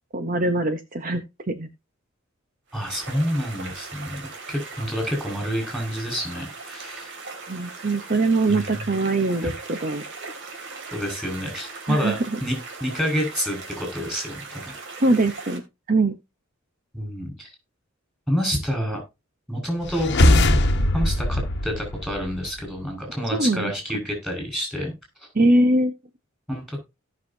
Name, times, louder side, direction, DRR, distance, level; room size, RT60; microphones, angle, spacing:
voice 1, 0.1-1.7 7.5-10.0 11.9-12.4 15.0-15.6 15.9-16.1 23.3-23.7 25.3-25.9, right 2 dB, 40° right, 8 dB, 1.0 m, -22 dB
voice 2, 2.7-4.2 4.5-7.1 8.5-8.7 10.9-14.7 16.9-17.5 18.3-19.0 19.5-20.5 20.9-24.9 26.5-26.8, equal, ahead, 1 dB, 5.6 m, -28 dB
sound 1, 2.7-15.6, right 4 dB, 60° right, 2.8 m, -39 dB
sound 2, 19.8-22.6, left 1 dB, 55° left, 1.2 m, -21 dB
17.5 x 6.3 x 2.8 m, 0.25 s
head